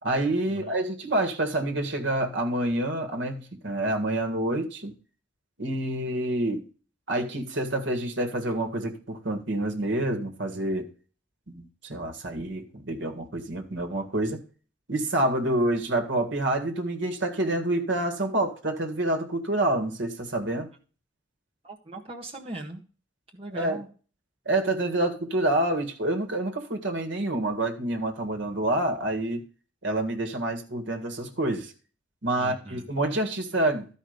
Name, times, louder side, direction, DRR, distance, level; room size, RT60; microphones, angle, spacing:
voice 1, 0.0-4.9 5.6-6.6 7.1-10.9 11.5-14.4 14.9-20.7 23.5-23.8 24.5-29.4 29.8-31.7 32.2-33.9, right 1 dB, 65° right, 1.9 m, -27 dB
voice 2, 21.6-22.8 23.3-23.9 32.4-32.9, right 2 dB, 30° right, 1.5 m, -39 dB
12.5 x 5.3 x 5.2 m
head